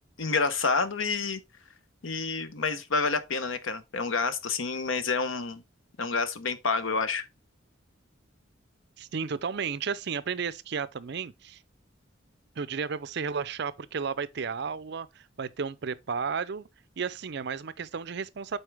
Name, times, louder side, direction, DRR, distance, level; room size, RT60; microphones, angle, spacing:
voice 1, 0.2-1.4 2.0-5.6 6.0-7.2, left 4 dB, 85° left, 0.9 m, -28 dB
voice 2, 9.0-11.6 12.6-16.7 17.0-18.6, right 6 dB, 60° right, 0.5 m, -33 dB
8.0 x 4.6 x 3.4 m
head